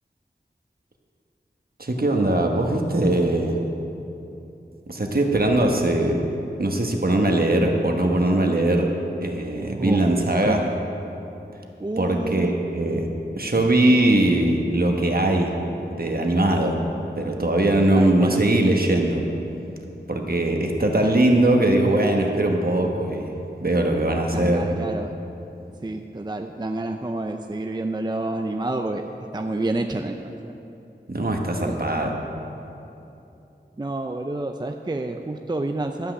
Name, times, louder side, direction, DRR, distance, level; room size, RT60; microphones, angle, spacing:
voice 1, 1.8-3.6 4.9-6.2 6.6-8.9 9.2-10.6 12.0-13.1 13.4-15.5 15.9-16.8 17.2-19.2 20.1-23.3 23.6-24.7 31.1-32.1, right 1 dB, 55° right, 2 dB, 1.3 m, -21 dB
voice 2, 9.8-10.1 10.4-10.6 11.8-12.5 17.9-18.4 24.3-25.1 25.8-29.0 29.3-30.6 31.7-32.2 33.8-36.1, right 2 dB, 25° right, 4 dB, 0.5 m, -29 dB
12.5 x 5.7 x 7.8 m, 2.9 s
wide cardioid pair, 45°, 19 cm